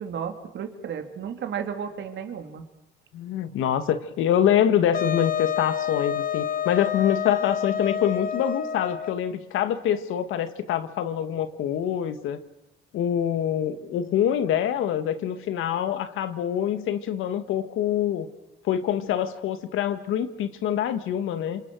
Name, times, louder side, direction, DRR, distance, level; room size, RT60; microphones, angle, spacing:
voice 1, 0.0-2.6, right 7 dB, 70° right, 5 dB, 3.4 m, -33 dB
voice 2, 3.1-12.4 12.9-18.3 18.6-21.6, left 10 dB, 90° left, 10 dB, 1.9 m, -25 dB
Wind instrument woodwind instrument, 4.9-9.3, left 8 dB, 45° left, 1.3 m, -28 dB
27.0 x 26.5 x 6.4 m, 0.94 s
cardioid pair, 90°, 20 cm